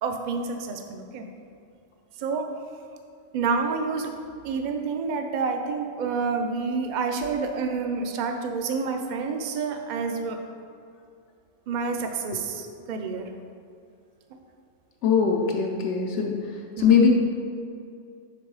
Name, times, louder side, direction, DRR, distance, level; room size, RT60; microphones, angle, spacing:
voice 1, 0.0-1.3 2.2-2.5 3.3-4.1 4.4-10.4 11.7-13.3 16.8-17.1, right 4 dB, 55° right, 5 dB, 0.5 m, -28 dB
voice 2, 15.0-16.3 16.8-17.1, left 6 dB, 75° left, 0 dB, 0.9 m, -21 dB
6.0 x 3.7 x 4.7 m, 2.4 s
omnidirectional pair, 1.2 m